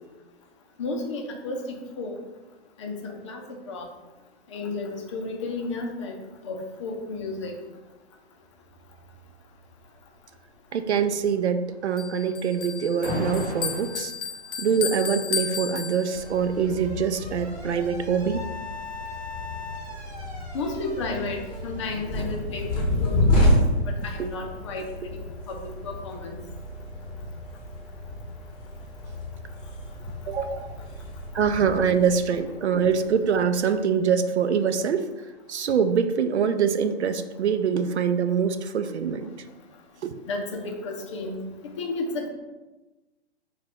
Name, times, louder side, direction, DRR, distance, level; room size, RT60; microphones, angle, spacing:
voice 1, 0.8-2.2 2.8-3.9 4.5-6.2 6.4-7.5 20.5-25.1 25.5-26.4 40.2-41.4 41.8-42.3, left 3 dB, 30° left, 1 dB, 0.5 m, -33 dB
voice 2, 10.7-14.1 14.6-18.4 24.2-24.3 30.3-30.9 31.3-35.1 35.5-39.3 40.0-40.2, right 6 dB, 80° right, 10 dB, 0.5 m, -24 dB
Bell, 12.0-16.5, left 7 dB, 85° left, 0.5 m, -33 dB
Alarm, 13.0-14.0 15.2-22.9, left 1 dB, 35° right, 1.2 m, -38 dB
sound 1, 16.1-33.6, left 1 dB, 10° left, 0.9 m, -30 dB
4.8 x 2.3 x 3.5 m, 1.1 s
figure-of-eight pair, 125°, 34 cm